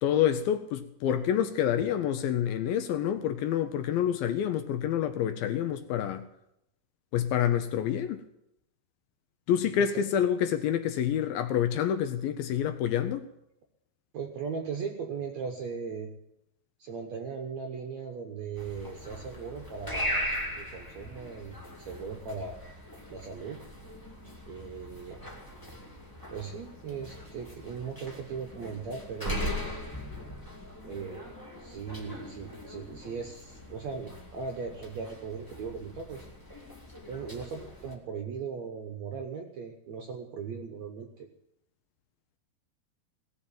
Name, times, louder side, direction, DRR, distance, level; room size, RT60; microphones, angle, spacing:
voice 1, 0.0-6.3 7.1-8.2 9.5-13.3, left 9 dB, 75° left, 2.2 m, -27 dB
voice 2, 14.1-16.1 16.8-20.3 20.6-22.6 23.1-23.6 24.5-25.2 26.3-29.4 30.8-36.2 37.1-41.3, right 5 dB, 75° right, 1.6 m, -38 dB
sound 1, 18.6-38.0, equal, 25° left, 0.4 m, -40 dB
17.5 x 7.1 x 9.1 m
omnidirectional pair, 4.9 m